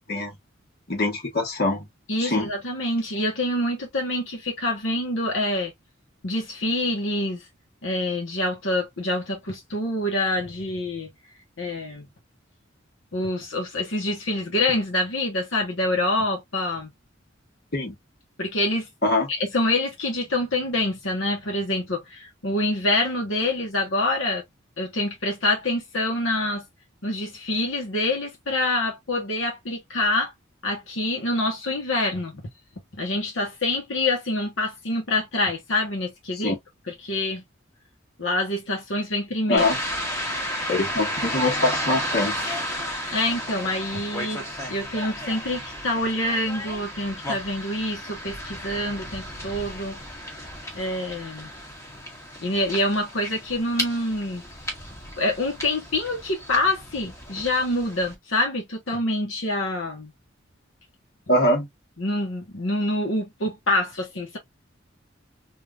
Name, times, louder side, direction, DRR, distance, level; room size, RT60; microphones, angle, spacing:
voice 1, 0.9-1.8 2.2-2.5 17.7-17.9 19.0-19.3 36.3-36.6 39.5-39.8 40.7-42.6 61.3-61.7, left 2 dB, 55° left, 1.3 m, -23 dB
voice 2, 2.1-5.7 6.2-7.5 7.8-11.1 11.6-12.1 13.1-16.9 18.4-18.9 19.3-24.4 24.8-26.7 27.0-30.3 30.6-32.4 32.9-36.5 36.9-37.4 38.2-39.6 43.1-50.0 50.7-51.5 52.4-54.4 55.2-60.1 62.0-64.4, left 1 dB, 75° left, 1.1 m, -26 dB
sound 1, 39.6-58.1, equal, 15° left, 1.1 m, -33 dB
3.3 x 2.7 x 2.3 m
head